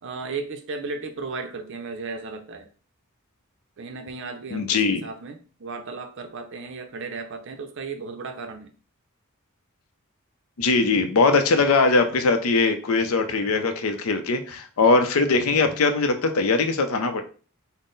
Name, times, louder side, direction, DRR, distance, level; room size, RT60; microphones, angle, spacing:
voice 1, 0.0-2.7 3.8-8.7, right 4 dB, 55° right, 7 dB, 0.5 m, -35 dB
voice 2, 4.5-5.0 10.6-17.2, left 3 dB, 70° left, 7 dB, 0.5 m, -21 dB
3.7 x 2.0 x 3.8 m, 0.39 s
head